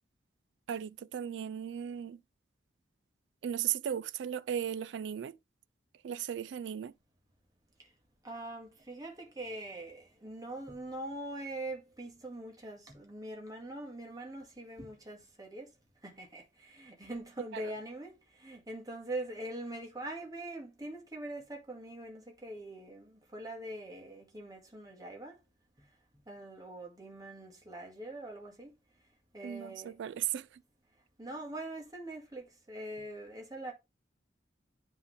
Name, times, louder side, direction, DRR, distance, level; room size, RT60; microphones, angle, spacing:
voice 1, 0.7-2.2 3.4-5.4 6.0-6.9 17.5-17.7 29.4-30.6, right 9 dB, 80° right, 0.3 m, -36 dB
voice 2, 8.2-15.7 16.0-25.4 26.3-28.7 29.3-29.9 31.2-33.7, right 1 dB, 20° right, 2.0 m, -43 dB
9.5 x 3.7 x 3.5 m
head